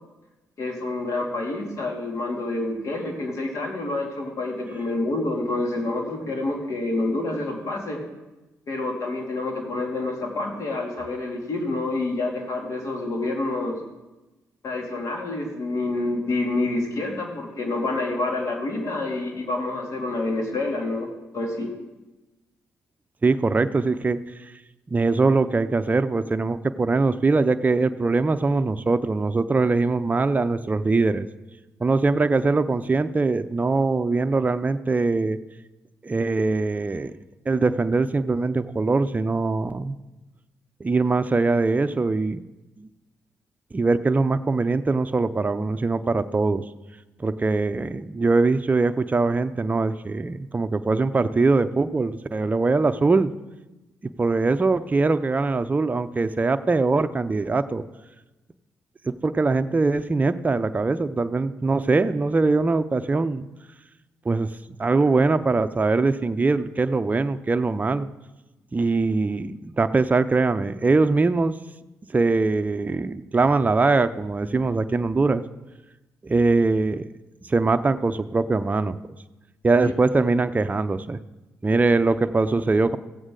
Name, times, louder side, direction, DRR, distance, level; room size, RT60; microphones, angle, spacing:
voice 1, 0.6-8.0 8.7-13.8 14.6-21.1 21.3-21.7 79.8-79.9, left 2 dB, 60° left, 1 dB, 2.6 m, -28 dB
voice 2, 23.2-24.2 24.9-31.3 31.8-35.4 36.0-37.1 37.5-40.0 40.8-42.4 42.8-42.9 43.7-46.6 47.2-53.3 54.0-57.8 59.1-63.5 64.3-64.5 64.8-68.1 68.7-71.5 72.1-75.4 76.2-77.1 77.5-79.0 79.6-81.2 81.6-83.0, right 3 dB, 25° right, 10 dB, 0.5 m, -22 dB
15.5 x 7.9 x 3.8 m, 1.1 s
supercardioid pair, 55°, 6 cm